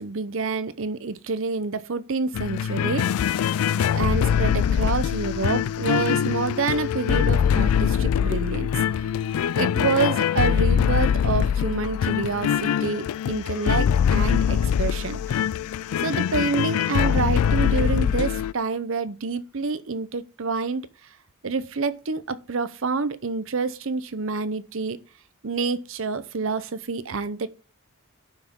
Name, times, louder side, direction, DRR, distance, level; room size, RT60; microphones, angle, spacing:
voice 1, 0.0-3.4 3.8-9.0 9.6-15.5 16.0-20.9 21.4-25.0 25.4-27.5, right 4 dB, 65° right, 0.7 m, -28 dB
sound 1, 2.3-18.5, left 8 dB, 90° left, 0.3 m, -23 dB
11.0 x 5.9 x 3.6 m
head